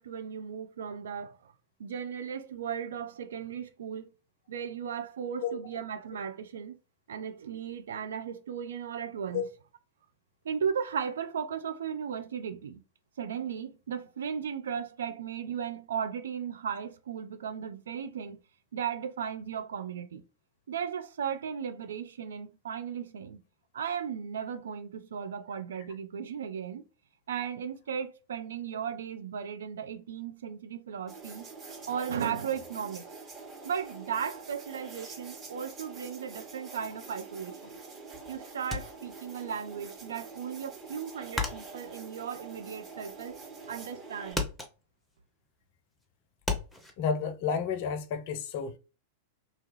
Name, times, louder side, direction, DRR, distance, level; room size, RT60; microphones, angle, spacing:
voice 1, 0.0-1.5 1.8-4.1 4.5-6.8 7.1-9.4 10.4-12.8 13.2-18.4 18.7-20.2 20.7-23.4 23.7-26.8 27.3-31.5 31.9-33.1 33.6-37.7 38.3-43.4 43.7-44.5, right 7 dB, 65° right, 0.4 m, -36 dB
sound 1, 31.1-44.3, right 4 dB, 25° right, 1.0 m, -46 dB
sound 2, 38.7-39.8 40.1-43.3 43.6-44.0 44.3-46.9, left 3 dB, 5° left, 0.6 m, -36 dB
voice 2, 47.0-48.8, left 6 dB, 50° left, 0.5 m, -31 dB
2.8 x 2.3 x 2.9 m
figure-of-eight pair, 95°, 0 cm